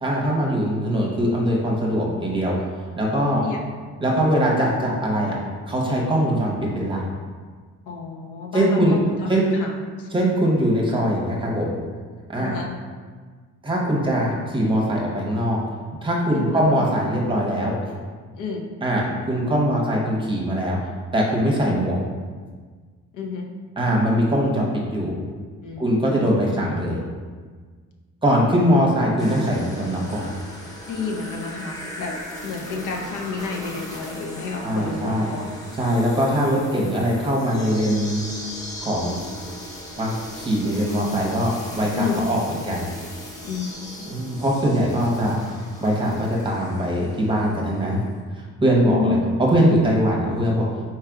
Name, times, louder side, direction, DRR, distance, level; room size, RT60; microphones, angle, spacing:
voice 1, 0.0-2.5 3.0-3.4 4.0-5.4 5.7-7.0 8.5-9.0 9.3-9.4 10.1-11.7 12.3-12.5 13.6-15.6 16.0-17.7 18.8-20.8 21.1-22.0 23.8-25.1 25.8-27.0 28.2-30.3 34.6-35.3 35.8-38.2 38.8-39.2 40.0-42.9 44.1-48.0 48.3-50.7, equal, 15° right, -3 dB, 0.9 m, -22 dB
voice 2, 3.3-3.6 7.9-10.1 12.4-12.7 16.3-16.6 18.3-18.6 23.1-23.5 25.6-26.5 30.9-32.2 32.4-35.5 41.9-42.2 43.4-44.0 48.9-49.3, left 4 dB, 75° left, 1 dB, 0.8 m, -30 dB
sound 1, 29.2-47.7 48.0-48.1, equal, 10° left, 0.7 m, -38 dB
4.5 x 2.4 x 4.6 m, 1.5 s
cardioid pair, 120°, 31 cm